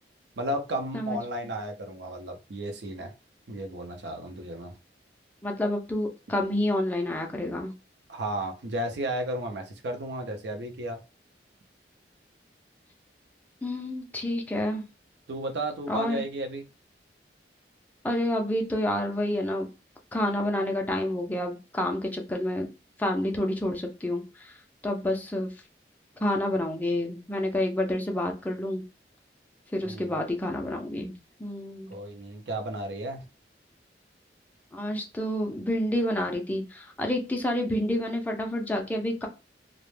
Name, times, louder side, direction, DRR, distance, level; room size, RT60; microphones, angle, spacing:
voice 1, 0.4-3.1 3.5-4.7 8.1-11.0 15.3-16.6 29.8-30.2 31.9-33.2, right 1 dB, 75° right, 4 dB, 0.5 m, -33 dB
voice 2, 5.4-7.7 13.6-14.8 15.9-16.2 18.0-19.7 20.1-22.7 23.0-24.6 24.8-25.5 26.2-28.8 29.7-31.1 31.4-31.9 34.7-39.3, left 1 dB, 10° left, 2 dB, 0.3 m, -29 dB
2.1 x 2.0 x 3.1 m, 0.29 s
head